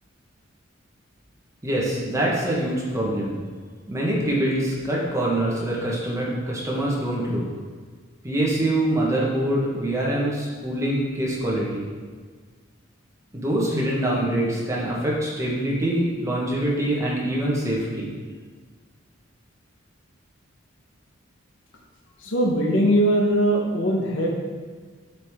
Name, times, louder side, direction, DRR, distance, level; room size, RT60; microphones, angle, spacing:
voice 1, 1.6-3.4 3.9-7.4 8.2-11.8 13.3-18.1, right 1 dB, 15° right, -5 dB, 1.3 m, -24 dB
voice 2, 22.2-24.3, equal, 65° left, 0 dB, 1.1 m, -20 dB
7.6 x 5.0 x 3.7 m, 1.6 s
head